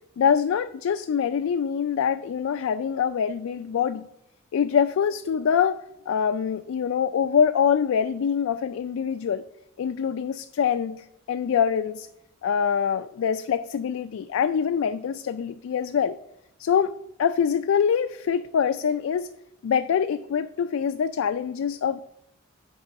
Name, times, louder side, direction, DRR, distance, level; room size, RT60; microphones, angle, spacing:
voice 1, 0.2-4.1 4.5-9.4 9.8-12.1 12.4-16.2 16.6-19.3 19.6-22.0, left 7 dB, 90° left, 10 dB, 0.3 m, -24 dB
8.6 x 4.8 x 5.5 m, 0.81 s
head